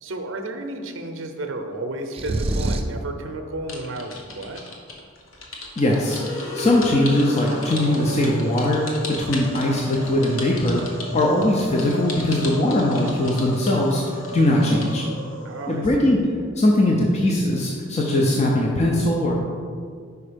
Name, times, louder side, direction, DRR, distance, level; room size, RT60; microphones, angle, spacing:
voice 1, 0.0-4.6 15.4-16.2, right 2 dB, 65° right, 5 dB, 0.6 m, -32 dB
sound 1, 2.1-3.0, right 2 dB, 30° right, 0.4 m, -24 dB
sound 2, 3.7-14.9, left 3 dB, 90° left, 1.1 m, -36 dB
voice 2, 5.8-6.2 6.5-10.8 11.1-15.0 15.7-16.2 16.6-19.4, left 1 dB, 35° left, -2 dB, 0.6 m, -20 dB
sound 3, 5.9-16.1, left 1 dB, 70° left, 1.3 m, -35 dB
5.3 x 4.7 x 5.1 m, 2.1 s
head